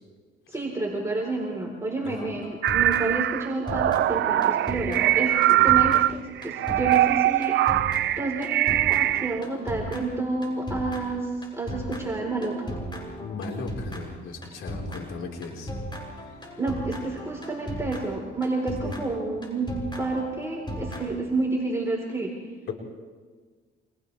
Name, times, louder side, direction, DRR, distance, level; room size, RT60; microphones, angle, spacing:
voice 1, 0.5-7.8 8.2-12.7 16.6-19.7 20.0-22.3, right 3 dB, 15° right, -1 dB, 4.3 m, -29 dB
sound 1, 2.2-3.4 3.7-21.5, equal, 25° left, 7.6 m, -37 dB
sound 2, 2.6-9.4, right 14 dB, 70° right, 0.5 m, -22 dB
voice 2, 13.2-15.7 16.2-16.3 18.8-18.9, left 4 dB, 85° left, -1 dB, 4.8 m, -37 dB
30.0 x 27.0 x 3.5 m, 1.5 s
cardioid pair, 90°, 20 cm